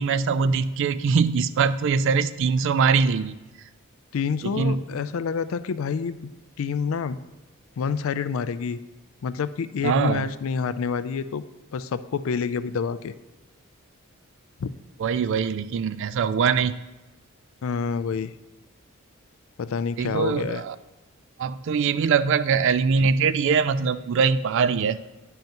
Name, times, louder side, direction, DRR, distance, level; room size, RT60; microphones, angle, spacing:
voice 1, 0.0-3.4 4.4-4.8 9.8-10.3 15.0-16.8 20.0-20.8 21.4-25.0, right 5 dB, 60° right, 14 dB, 0.3 m, -22 dB
voice 2, 4.1-6.2 6.6-7.2 7.8-8.8 9.2-11.4 11.7-13.1 14.6-14.7 17.6-18.3 19.6-20.6 23.0-23.1, left 6 dB, 70° left, 14 dB, 0.4 m, -28 dB
10.5 x 5.6 x 2.9 m, 1.1 s
head